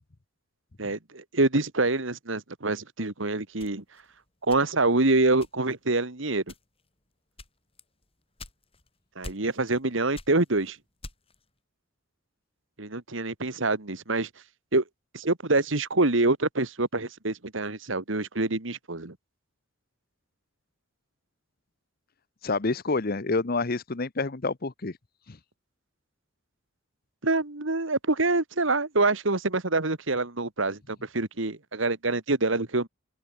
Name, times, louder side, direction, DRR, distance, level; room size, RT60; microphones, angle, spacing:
voice 1, 0.8-3.8 4.5-6.4 9.2-10.8 12.8-14.3 14.7-14.8 15.1-19.2 27.2-32.9, right 2 dB, 70° right, 2.0 m, -26 dB
sound 1, 3.6-5.0 5.4-5.9 6.4-6.9 7.4-8.9 9.2-9.8 10.1-11.4, left 2 dB, 30° left, 6.3 m, -45 dB
voice 2, 22.4-25.0 25.3-25.4, left 3 dB, 50° left, 0.9 m, -28 dB
open air
head